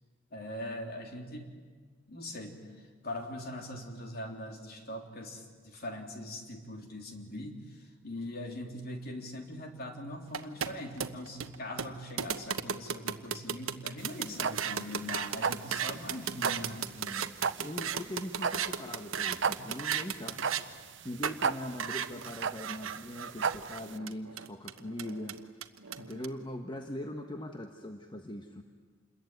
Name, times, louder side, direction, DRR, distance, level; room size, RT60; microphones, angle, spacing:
voice 1, 0.3-1.5 2.1-16.9 21.7-21.8 22.1-22.2, left 1 dB, 50° left, 3 dB, 3.5 m, -41 dB
sound 1, 10.3-20.6 21.2-21.4 21.8-26.3, right 8 dB, 85° right, 1.2 m, -35 dB
sound 2, 14.0-24.0, right 5 dB, 60° right, 0.8 m, -35 dB
voice 2, 16.8-17.3 17.6-20.4 21.0-25.4 26.0-28.6, left 1 dB, 25° left, 4 dB, 1.2 m, -41 dB
28.0 x 21.5 x 9.3 m, 1.5 s
head